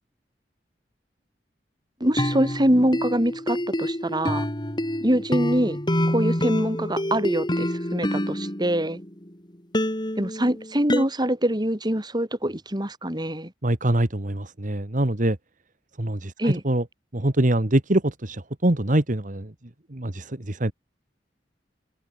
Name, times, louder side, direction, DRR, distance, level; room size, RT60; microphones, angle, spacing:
sound 1, 2.0-9.3 9.7-11.0, equal, 25° left, 7.2 m, -27 dB
voice 1, 2.0-4.5 5.0-5.8 6.1-9.0 10.2-13.5 16.4-16.6, right 1 dB, 25° right, 5.5 m, -24 dB
voice 2, 13.6-15.4 16.0-16.8 17.1-19.5 19.9-20.7, right 1 dB, 45° right, 1.7 m, -24 dB
head